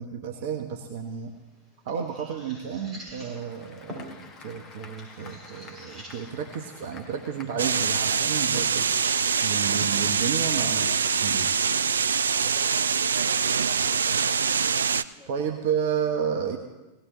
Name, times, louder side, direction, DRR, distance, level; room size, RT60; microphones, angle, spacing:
voice 1, 0.0-1.3 1.8-8.9 9.4-11.5 15.3-16.6, right 7 dB, 50° right, 4 dB, 1.2 m, -31 dB
sound 1, 1.0-12.0, equal, 25° right, 6.6 m, -48 dB
Applause / Crowd, 2.9-9.4, left 4 dB, 30° left, 1.6 m, -50 dB
sound 2, 7.6-15.0, right 6 dB, 70° right, 0.4 m, -24 dB
voice 2, 12.4-14.4 15.0-15.3 16.0-16.1, left 1 dB, 5° right, -2 dB, 3.8 m, -53 dB
18.0 x 17.5 x 3.1 m, 1.1 s
figure-of-eight pair, 90°, 0 cm